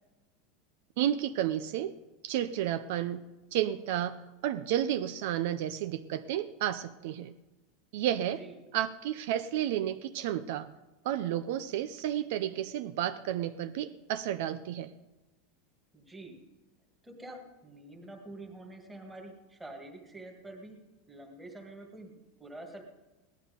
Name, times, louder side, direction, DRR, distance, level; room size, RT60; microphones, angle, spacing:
voice 1, 1.0-2.0 2.2-3.2 3.5-7.3 7.9-8.4 8.7-10.7 11.0-14.9, right 11 dB, 55° right, 10 dB, 0.6 m, -31 dB
voice 2, 15.9-16.4 17.0-20.8 21.1-22.1 22.4-22.8, right 2 dB, 5° right, 1 dB, 2.0 m, -47 dB
17.5 x 11.5 x 5.2 m, 1.1 s
supercardioid pair, 175°, 0 cm